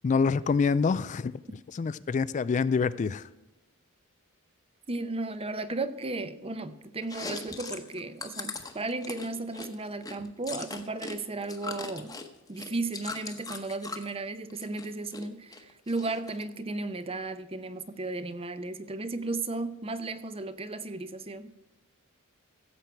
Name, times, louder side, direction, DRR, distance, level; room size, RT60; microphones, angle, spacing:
voice 1, 0.0-1.3 1.7-3.3, left 5 dB, 35° left, 17 dB, 0.3 m, -26 dB
voice 2, 4.9-12.2 12.5-21.5, right 2 dB, 25° right, 12 dB, 0.7 m, -35 dB
Chewing mastication, 7.0-11.2 11.4-14.1 14.5-15.2 15.5-16.4, left 3 dB, 15° left, 1.0 m, -40 dB
15.5 x 7.5 x 4.5 m, 1.0 s
head